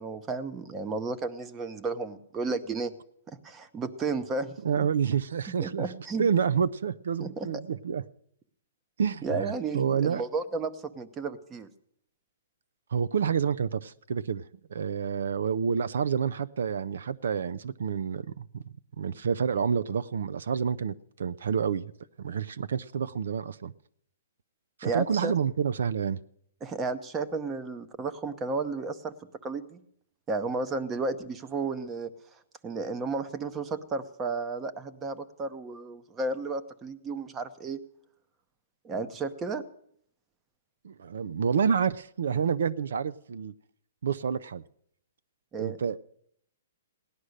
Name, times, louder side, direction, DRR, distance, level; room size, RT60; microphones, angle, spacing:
voice 1, 0.0-2.9 3.3-4.8 5.6-6.3 7.2-7.6 9.2-11.7 24.8-25.3 26.6-29.1 29.4-29.8 30.3-32.1 32.6-37.8 38.8-39.6 45.5-45.8, right 3 dB, 15° right, 11 dB, 0.9 m, -33 dB
voice 2, 4.6-5.9 6.2-8.0 9.0-10.2 12.9-14.4 14.7-18.6 19.0-21.9 22.2-23.7 24.8-26.2 40.8-43.5 44.0-44.6 45.5-46.1, right 7 dB, 75° right, 19 dB, 0.5 m, -28 dB
17.5 x 11.0 x 6.5 m, 0.68 s
hypercardioid pair, 160°, 0 cm